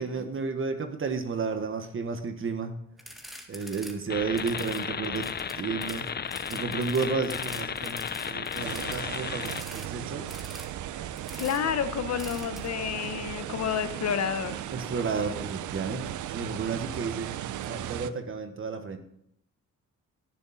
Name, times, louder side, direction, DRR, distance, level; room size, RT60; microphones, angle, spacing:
voice 1, 0.0-2.7 3.5-5.3 5.5-6.1 6.5-10.3 14.7-17.3 17.6-19.0, right 5 dB, 45° right, 7 dB, 1.4 m, -32 dB
sound 1, 3.0-3.9 4.2-9.9 10.3-10.7 11.2-11.6 12.2-12.7, equal, ahead, 2.0 m, -44 dB
sound 2, 4.1-9.6, left 7 dB, 35° left, 0.7 m, -34 dB
sound 3, 8.6-18.1, right 12 dB, 80° right, 0.7 m, -37 dB
voice 2, 11.4-14.6, left 8 dB, 60° left, 11 dB, 1.1 m, -30 dB
18.0 x 7.0 x 4.2 m, 0.73 s
cardioid pair, 90°, 30 cm